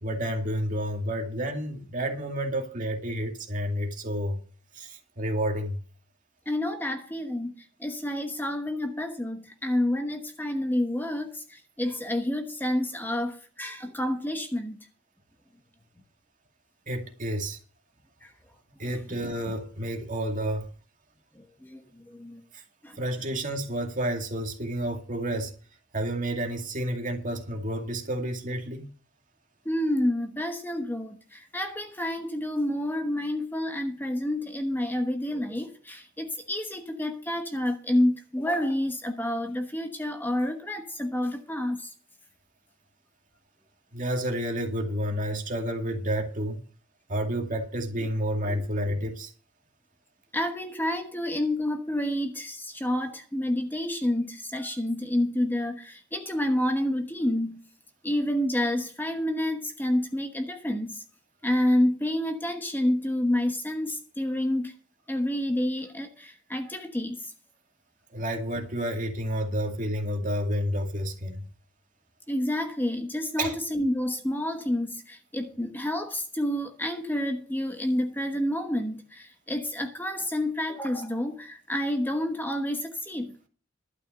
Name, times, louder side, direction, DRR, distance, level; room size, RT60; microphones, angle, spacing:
voice 1, 0.0-4.4 4.7-5.8 16.9-17.6 18.8-20.7 22.5-22.6 23.0-25.5 25.9-28.9 43.9-46.6 47.1-49.3 68.1-71.5 73.4-73.5, equal, 40° right, 2.2 m, -30 dB
voice 2, 6.5-14.8 18.2-18.3 18.9-19.0 21.3-22.4 22.8-23.0 29.6-41.9 48.5-48.6 50.3-57.6 58.0-61.0 61.4-64.7 65.1-67.3 72.3-83.3, left 1 dB, 10° left, 1.1 m, -29 dB
12.0 x 6.2 x 7.6 m
head